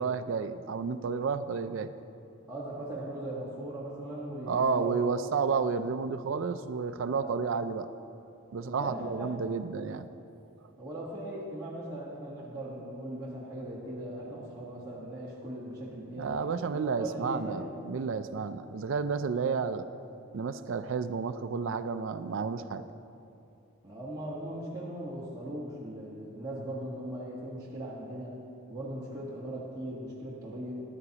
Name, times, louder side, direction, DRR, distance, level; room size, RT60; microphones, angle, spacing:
voice 1, 0.0-1.9 4.5-7.9 8.5-10.1 16.2-19.8 20.3-22.8, right 5 dB, 60° right, 10 dB, 0.4 m, -31 dB
voice 2, 2.5-4.9 5.2-5.4 7.1-7.3 8.6-9.3 10.8-16.3 16.7-17.7 23.8-28.3 28.7-30.8, right 1 dB, 20° right, -8 dB, 1.3 m, -39 dB
14.0 x 10.5 x 2.9 m, 2.7 s
head